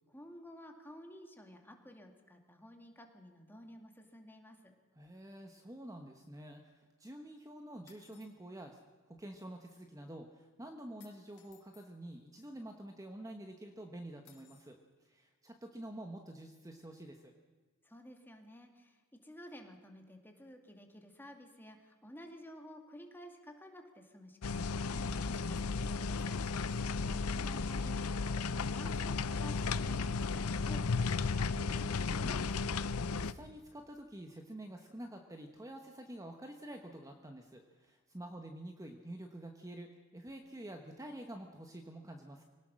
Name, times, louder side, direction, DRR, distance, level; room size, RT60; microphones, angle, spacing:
voice 1, 0.1-4.7 17.8-26.4 27.2-31.5, equal, 10° left, 3 dB, 2.3 m, -53 dB
voice 2, 5.0-8.8 9.1-17.3 26.4-27.2 31.5-42.4, right 1 dB, 15° right, 4 dB, 1.1 m, -48 dB
sound 1, 7.9-8.4 11.0-11.9 14.3-14.8, left 9 dB, 55° left, 3.3 m, -63 dB
sound 2, 24.4-33.3, left 4 dB, 80° left, 0.6 m, -34 dB
23.5 x 18.0 x 6.4 m, 1.5 s
head